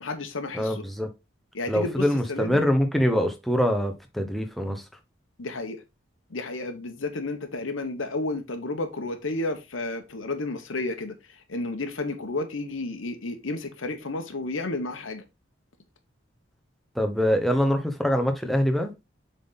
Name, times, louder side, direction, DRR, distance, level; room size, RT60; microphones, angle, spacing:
voice 1, 0.0-0.8 1.5-2.6 5.4-5.8 6.3-11.1 11.5-15.2, left 2 dB, 85° left, 1.0 m, -32 dB
voice 2, 0.5-1.1 1.7-4.8 16.9-18.9, equal, ahead, 0.9 m, -24 dB
7.3 x 4.1 x 3.7 m
head